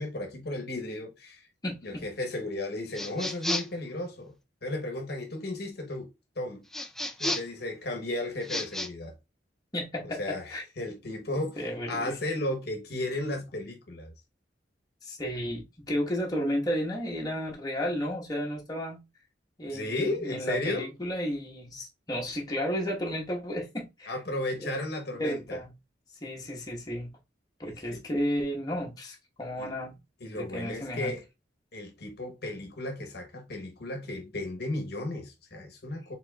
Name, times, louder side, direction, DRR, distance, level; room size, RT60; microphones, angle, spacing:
voice 1, 0.0-1.5 1.8-4.3 4.6-6.1 6.4-6.6 7.2-9.1 10.0-14.1 19.7-20.9 24.1-25.6 27.9-28.0 29.6-29.7 30.2-31.2 31.7-36.2, left 2 dB, 60° left, 1.0 m, -34 dB
voice 2, 1.6-2.0 9.7-10.6 11.6-12.2 15.0-19.0 19.6-24.2 25.2-25.7 26.2-27.1 27.6-29.9 30.3-31.1, equal, 20° left, 1.1 m, -33 dB
sound 1, 2.9-3.8 6.7-7.6 8.4-8.9, left 1 dB, ahead, 0.4 m, -32 dB
4.5 x 3.7 x 2.2 m
head